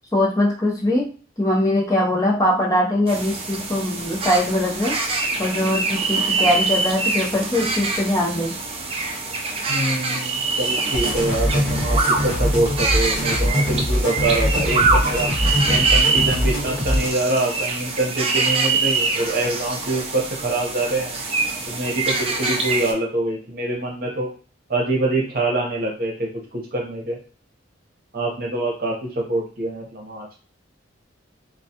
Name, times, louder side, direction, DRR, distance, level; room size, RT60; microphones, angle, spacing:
voice 1, 0.1-1.1 1.4-5.0 5.4-8.5, left 1 dB, 20° left, -3 dB, 0.6 m, -21 dB
sound 1, 3.1-22.9, right 3 dB, 30° right, 0.4 m, -24 dB
voice 2, 9.7-15.3 15.7-21.2 21.7-24.3 24.7-27.2 28.1-30.3, right 2 dB, 50° right, -2 dB, 0.8 m, -25 dB
sound 2, 10.9-17.1, equal, 10° right, 1.1 m, -22 dB
2.3 x 2.1 x 2.7 m, 0.39 s
head